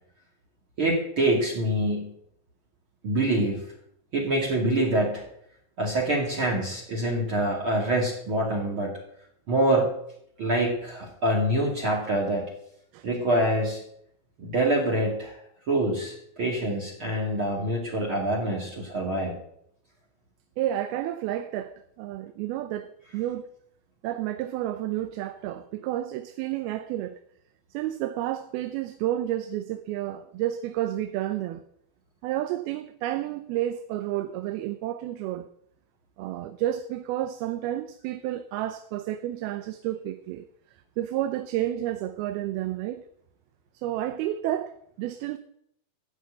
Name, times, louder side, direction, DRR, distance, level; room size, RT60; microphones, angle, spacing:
voice 1, 0.8-2.1 3.0-3.6 4.1-5.2 5.8-9.0 9.5-9.9 10.4-12.5 13.0-13.8 14.4-15.4 15.7-19.3, right 1 dB, 40° right, 2.8 m, -25 dB
voice 2, 20.6-23.5 24.0-27.2 27.7-31.6 32.2-35.5 36.2-40.5 41.0-43.0 43.7-45.4, right 13 dB, 85° right, 2.6 m, -30 dB
14.0 x 6.6 x 8.8 m
omnidirectional pair, 4.3 m